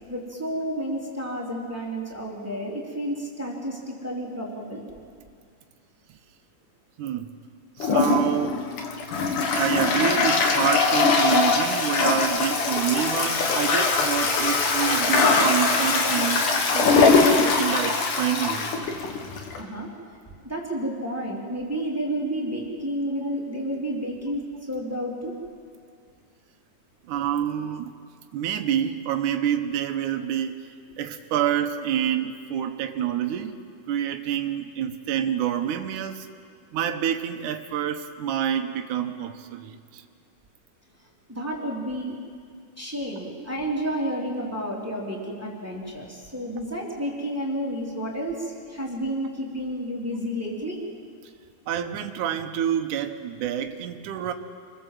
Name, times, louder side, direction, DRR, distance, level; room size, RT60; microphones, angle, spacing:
voice 1, 0.1-5.0 19.6-19.9 20.4-24.4 24.7-25.3 41.3-42.1 42.8-50.8, equal, 5° right, -3 dB, 3.4 m, -31 dB
voice 2, 7.0-7.3 7.8-8.6 9.6-16.5 16.7-17.1 17.6-18.7 23.2-23.3 27.1-27.9 28.3-33.6 33.9-36.3 36.7-40.0 51.7-54.3, right 10 dB, 75° right, 5 dB, 2.5 m, -27 dB
Toilet flush, 7.8-19.6, left 4 dB, 75° left, 3.5 m, -22 dB
27.5 x 20.5 x 7.8 m, 2.2 s
omnidirectional pair, 3.7 m